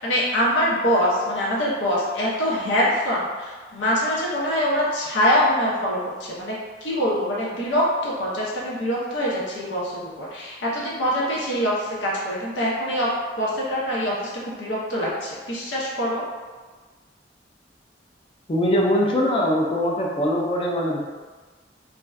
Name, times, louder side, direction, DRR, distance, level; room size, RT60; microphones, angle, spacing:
voice 1, 0.0-6.6 6.8-13.1 13.4-14.3 14.6-16.2, equal, 80° left, -5 dB, 0.6 m, -24 dB
voice 2, 18.5-21.0, equal, 30° left, -2 dB, 0.4 m, -22 dB
2.5 x 2.2 x 2.3 m, 1.4 s
head